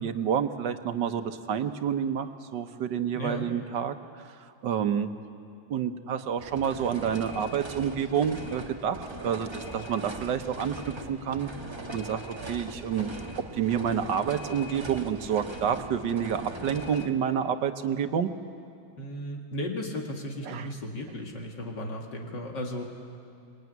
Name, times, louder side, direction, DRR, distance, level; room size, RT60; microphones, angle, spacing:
voice 1, 0.0-4.3 4.6-5.1 5.7-10.7 11.1-11.5 11.9-13.2 13.5-18.3 20.5-20.7, right 8 dB, 75° right, 9 dB, 1.7 m, -29 dB
voice 2, 3.1-3.5 19.0-22.8, left 1 dB, 75° left, 1 dB, 2.8 m, -35 dB
sound 1, 6.4-17.1, right 1 dB, 15° right, 1.1 m, -40 dB
26.0 x 21.0 x 9.4 m, 2.5 s
omnidirectional pair, 1.9 m